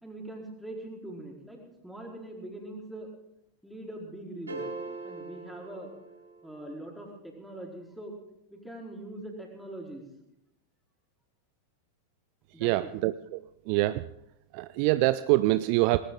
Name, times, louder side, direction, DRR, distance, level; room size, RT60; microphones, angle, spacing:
voice 1, 0.0-3.1 3.6-4.8 5.0-5.9 6.4-8.2 8.5-10.1 12.5-12.9, right 1 dB, ahead, -1 dB, 4.4 m, -42 dB
sound 1, 4.5-6.7, right 3 dB, 75° right, 3.2 m, -41 dB
voice 2, 12.6-13.4 13.7-14.0 14.5-16.0, right 18 dB, 45° right, 15 dB, 0.5 m, -25 dB
19.0 x 18.0 x 3.9 m, 0.84 s
figure-of-eight pair, 90°, 0 cm